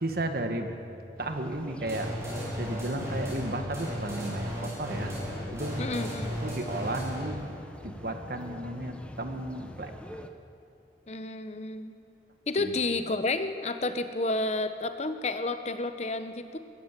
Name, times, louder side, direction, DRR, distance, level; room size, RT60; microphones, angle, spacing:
voice 1, 0.0-0.7 1.2-5.1 5.5-5.8 6.4-7.4 7.8-9.9 12.6-12.7, right 1 dB, 55° right, 6 dB, 1.7 m, -34 dB
sound 1, 1.2-10.3, equal, 5° left, 0.9 m, -44 dB
sound 2, 1.9-7.4, equal, 15° right, 7.0 m, -35 dB
voice 2, 5.8-6.4 11.1-12.0 12.5-16.6, left 2 dB, 35° left, 9 dB, 0.8 m, -31 dB
22.0 x 16.5 x 7.5 m, 2.8 s
head